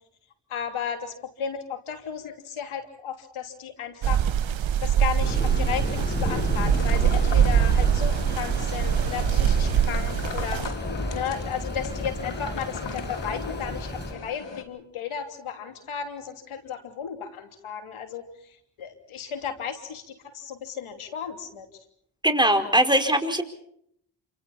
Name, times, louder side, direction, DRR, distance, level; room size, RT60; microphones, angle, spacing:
voice 1, 0.5-4.3 4.8-10.6 11.1-21.7, left 8 dB, 90° left, 6 dB, 3.2 m, -34 dB
sound 1, 4.0-10.7, right 9 dB, 70° right, 1.0 m, -23 dB
Thunder / Rain, 5.2-14.1, left 1 dB, 20° left, 5.8 m, -32 dB
sound 2, 6.6-14.6, left 5 dB, 65° left, 3.3 m, -37 dB
voice 2, 22.2-23.4, right 1 dB, 10° right, 5 dB, 4.8 m, -21 dB
28.0 x 26.5 x 4.3 m, 0.67 s
supercardioid pair, 45°, 48 cm